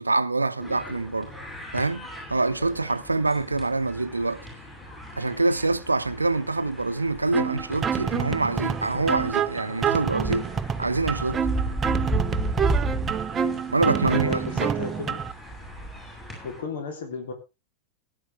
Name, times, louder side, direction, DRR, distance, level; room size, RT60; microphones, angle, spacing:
voice 1, 0.0-1.3 1.7-4.4 5.2-10.5 10.8-11.4 13.7-14.7, right 3 dB, 80° right, 0.7 m, -25 dB
sound 1, 0.6-16.6, right 1 dB, 10° left, 7.0 m, -34 dB
sound 2, 7.3-15.3, right 7 dB, 20° right, 0.7 m, -28 dB
voice 2, 13.9-15.2 16.6-17.3, left 3 dB, 60° left, 3.5 m, -33 dB
17.5 x 9.9 x 3.5 m
figure-of-eight pair, 90°, 0 cm